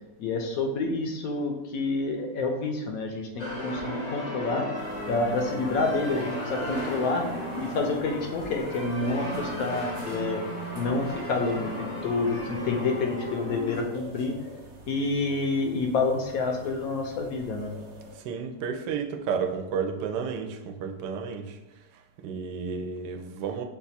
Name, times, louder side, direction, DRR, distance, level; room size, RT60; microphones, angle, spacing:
voice 1, 0.2-4.7 5.1-7.2 7.6-10.4 10.7-14.4 14.9-17.7, left 3 dB, 70° left, 3 dB, 1.0 m, -28 dB
sound 1, 3.4-13.8, equal, 45° left, 0.5 m, -35 dB
sound 2, 4.8-18.2, right 2 dB, 60° right, 0.8 m, -45 dB
voice 2, 18.1-21.6 22.2-23.6, right 6 dB, 85° right, 5 dB, 1.2 m, -32 dB
5.6 x 2.3 x 4.1 m, 0.99 s
omnidirectional pair, 1.8 m